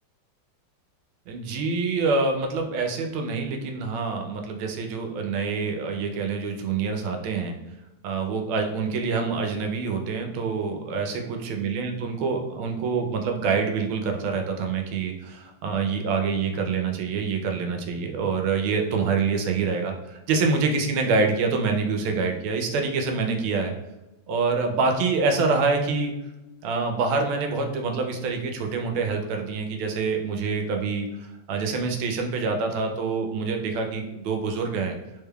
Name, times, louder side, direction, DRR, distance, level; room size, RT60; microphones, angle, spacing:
voice 1, 1.3-7.5 8.0-23.7 24.3-26.1 26.6-31.1 31.5-34.9, right 4 dB, 80° right, 4 dB, 1.4 m, -26 dB
3.5 x 3.4 x 2.2 m, 0.96 s
omnidirectional pair, 2.3 m